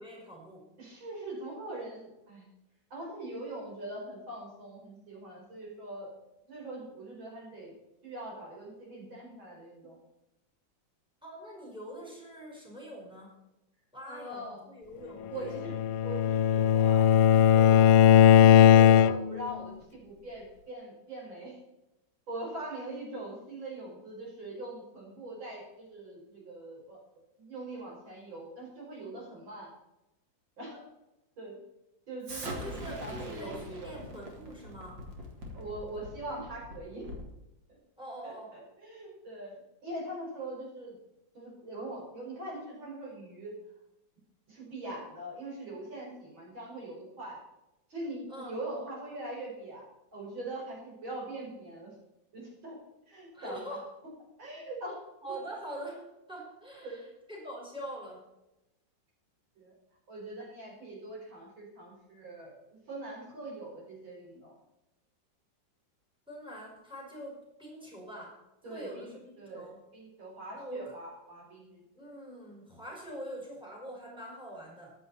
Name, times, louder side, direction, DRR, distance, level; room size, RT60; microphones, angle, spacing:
voice 1, 0.0-0.7 11.2-13.3 13.9-15.7 32.4-35.1 38.0-38.6 48.3-48.6 53.3-53.9 55.2-58.3 66.3-68.4 68.7-69.8 70.6-71.0 71.9-74.9, right 1 dB, ahead, -2 dB, 5.0 m, -44 dB
voice 2, 0.8-2.5 2.9-6.1 6.5-7.7 8.0-10.0 14.1-14.6 15.3-15.7 16.0-18.0 18.3-21.6 22.3-27.0 27.4-29.7 30.6-30.8 31.4-31.6 32.1-34.0 35.5-37.1 38.2-38.3 38.8-41.0 41.3-43.5 44.5-47.4 47.9-49.8 50.1-52.0 52.3-52.8 53.1-53.8 54.4-55.0 56.8-57.0 59.6-59.7 60.1-62.5 62.9-64.5 68.6-69.1 69.4-72.1, right 1 dB, 85° right, -3 dB, 6.0 m, -42 dB
Bowed string instrument, 15.5-19.5, left 9 dB, 80° left, 1.3 m, -19 dB
Explosion, 32.2-37.4, equal, 70° right, 3.2 m, -43 dB
14.0 x 11.5 x 4.3 m, 0.93 s
omnidirectional pair, 2.1 m